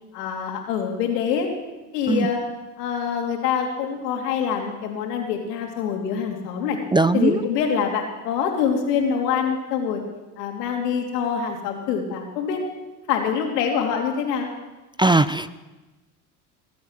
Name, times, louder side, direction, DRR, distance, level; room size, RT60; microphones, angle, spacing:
voice 1, 0.1-1.5 1.9-2.4 2.8-6.8 7.1-10.0 10.4-12.6 13.1-14.5, left 7 dB, 85° left, 2 dB, 3.1 m, -25 dB
voice 2, 6.9-7.4 15.0-15.5, right 3 dB, 10° right, 15 dB, 0.4 m, -19 dB
21.5 x 8.5 x 7.6 m, 1.1 s
hypercardioid pair, 70°, 47 cm